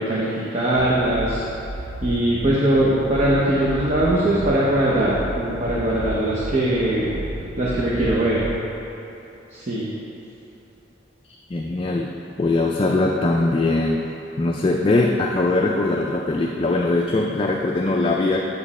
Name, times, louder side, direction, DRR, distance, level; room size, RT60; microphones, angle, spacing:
voice 1, 0.0-1.4 2.0-7.2 7.6-8.4 9.5-9.9, right 1 dB, 40° right, -7 dB, 0.9 m, -21 dB
sound 1, 0.8-8.8, right 1 dB, 85° right, 0.7 m, -33 dB
voice 2, 11.5-12.1 12.4-14.1 14.4-18.4, left 2 dB, 30° left, 0 dB, 0.4 m, -21 dB
8.1 x 5.2 x 4.2 m, 2.9 s
head